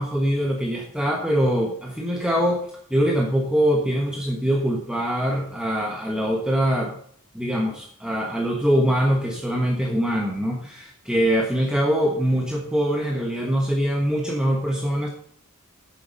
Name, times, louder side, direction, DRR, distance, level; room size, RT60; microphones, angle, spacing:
voice 1, 0.0-2.6 2.9-6.9 7.3-15.1, equal, 5° right, -1 dB, 1.2 m, -23 dB
9.7 x 7.3 x 5.3 m, 0.62 s
head